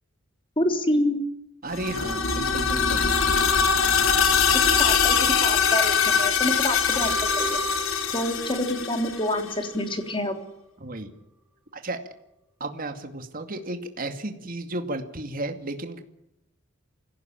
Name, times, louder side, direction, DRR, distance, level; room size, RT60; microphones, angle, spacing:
voice 1, 0.6-1.2 4.5-7.6 8.1-10.4, left 1 dB, 25° left, 6 dB, 3.6 m, -27 dB
voice 2, 1.6-3.1 10.8-11.1 11.7-12.0 12.6-16.0, right 2 dB, 45° right, 6 dB, 2.3 m, -33 dB
sound 1, 1.7-9.5, left 6 dB, 80° left, 3.1 m, -22 dB
sound 2, 6.8-9.9 10.3-10.4, right 3 dB, 5° right, 3.0 m, -35 dB
25.5 x 17.0 x 9.1 m, 0.84 s
head